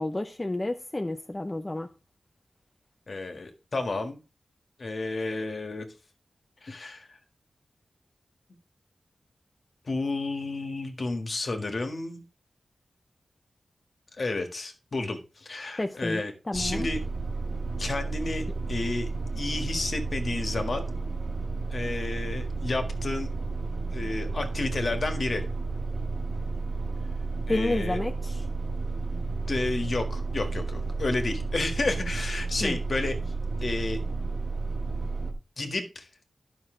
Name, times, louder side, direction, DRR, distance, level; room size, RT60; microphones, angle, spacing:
voice 1, 0.0-1.9 15.8-16.9 27.5-28.4 32.6-32.8, left 2 dB, 20° left, 0.6 m, -30 dB
voice 2, 3.1-4.2 4.8-5.9 6.6-7.2 9.8-12.2 14.2-17.0 17.8-19.1 19.3-20.9 21.7-23.3 23.9-25.5 27.5-28.0 29.5-33.2 33.6-34.0 35.6-36.1, left 2 dB, 50° left, 1.7 m, -31 dB
sound 1, 16.5-35.3, right 3 dB, 55° right, 1.8 m, -32 dB
11.5 x 6.1 x 3.8 m
wide cardioid pair, 120°, 0 cm